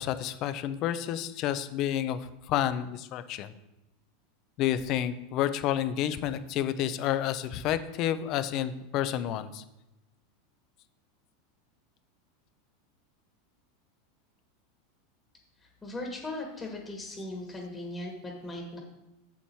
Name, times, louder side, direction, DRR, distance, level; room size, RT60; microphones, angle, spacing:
voice 1, 0.0-3.5 4.6-9.6, left 11 dB, 40° left, 12 dB, 0.6 m, -30 dB
voice 2, 15.6-18.8, left 2 dB, 15° left, 0 dB, 1.5 m, -38 dB
7.3 x 7.1 x 4.6 m, 0.94 s
supercardioid pair, 150°, 0 cm